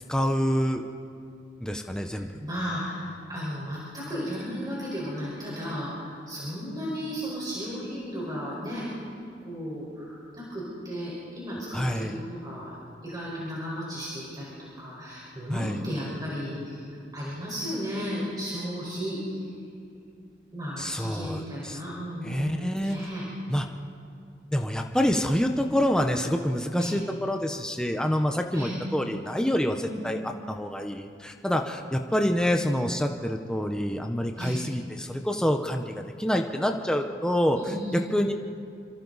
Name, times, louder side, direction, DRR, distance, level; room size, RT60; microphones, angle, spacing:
voice 1, 0.1-0.8 1.6-2.3 11.7-12.2 15.5-15.8 20.8-21.8 22.2-23.0 23.5-23.7 24.5-30.2 30.5-37.6 37.9-38.3, equal, 5° left, 4 dB, 0.8 m, -27 dB
voice 2, 2.4-3.0 3.3-8.9 9.4-12.7 13.0-16.8 17.1-19.3 20.5-23.2 26.7-26.9 28.5-28.8 29.8-30.0 34.3-34.6 37.6-38.0, equal, 20° right, -6 dB, 5.0 m, -34 dB
26.5 x 26.5 x 4.1 m, 2.4 s
head